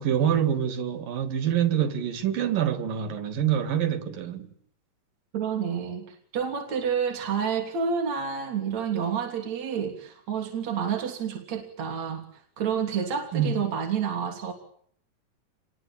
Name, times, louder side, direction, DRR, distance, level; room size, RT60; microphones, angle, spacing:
voice 1, 0.0-4.5 13.3-13.5, right 9 dB, 85° right, 3.8 m, -26 dB
voice 2, 5.3-12.2 12.6-14.5, right 7 dB, 55° right, 4.2 m, -29 dB
28.0 x 21.5 x 8.8 m
omnidirectional pair, 3.8 m